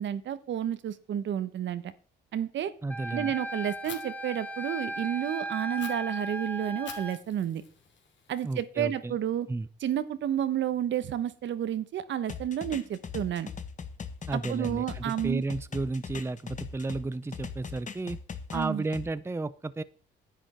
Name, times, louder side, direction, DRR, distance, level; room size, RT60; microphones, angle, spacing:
voice 1, 0.0-1.9 2.3-2.7 3.1-7.6 8.3-9.5 9.8-13.5 14.3-15.4 18.5-18.8, right 10 dB, 70° right, 13 dB, 1.1 m, -31 dB
voice 2, 2.8-3.3 8.4-9.2 9.5-9.7 14.3-18.2 18.5-19.8, right 2 dB, 15° right, 15 dB, 0.6 m, -33 dB
Wind instrument woodwind instrument, 2.9-7.2, right 1 dB, 10° left, 1.3 m, -36 dB
Fire, 3.8-4.0 5.8-5.9 6.9-8.8, left 6 dB, 65° left, 3.0 m, -47 dB
sound 1, 12.3-17.0 17.3-19.0, left 6 dB, 40° left, 1.6 m, -40 dB
10.5 x 9.0 x 4.4 m, 0.42 s
cardioid pair, 90°, 20 cm